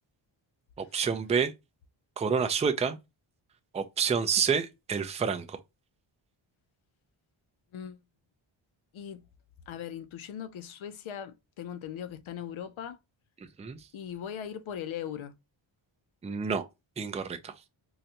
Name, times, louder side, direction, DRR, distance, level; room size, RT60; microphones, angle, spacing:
voice 1, 0.8-1.5 2.2-3.0 3.7-5.6 13.6-13.8 16.2-16.6 17.0-17.5, right 6 dB, 15° right, 0.3 m, -28 dB
voice 2, 9.7-13.0 13.9-15.3, left 9 dB, 70° left, 0.6 m, -39 dB
3.9 x 2.2 x 2.8 m
wide cardioid pair, 100°, 49 cm